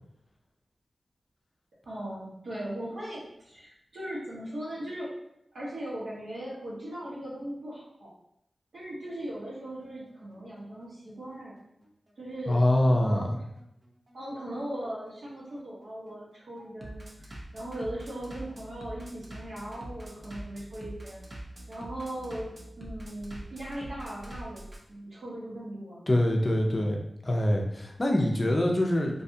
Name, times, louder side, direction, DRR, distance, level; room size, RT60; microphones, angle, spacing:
voice 1, 1.8-5.1 5.5-8.1 8.7-11.6 12.2-13.3 14.1-21.2 21.7-24.6 24.9-26.0, right 1 dB, 70° right, -7 dB, 1.1 m, -39 dB
Bass drum, 8.8-24.8, right 1 dB, 45° right, 0.5 m, -45 dB
voice 2, 12.5-13.3 26.1-27.0 27.2-29.2, left 1 dB, 30° left, 1 dB, 0.5 m, -24 dB
2.5 x 2.3 x 2.7 m, 0.81 s
wide cardioid pair, 85°, 0 cm